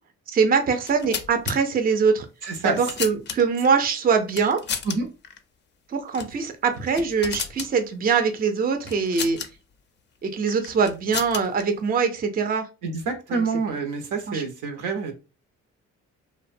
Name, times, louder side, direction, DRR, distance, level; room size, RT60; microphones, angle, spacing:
voice 1, 0.3-2.3 2.6-4.6 5.9-9.4 10.2-12.7 13.3-13.4 14.3-14.4, right 5 dB, 30° right, 6 dB, 0.4 m, -23 dB
sound 1, 0.7-1.6 2.4-3.7 4.3-5.0 5.2-5.4 6.1-6.4 6.7-7.7 8.9-9.5 10.5-11.6, left 7 dB, 40° left, 0.4 m, -32 dB
voice 2, 2.4-2.8 4.8-5.1 12.8-15.1, right 4 dB, 80° right, 5 dB, 0.7 m, -27 dB
2.5 x 2.1 x 2.5 m, 0.30 s
cardioid pair, 90°, 30 cm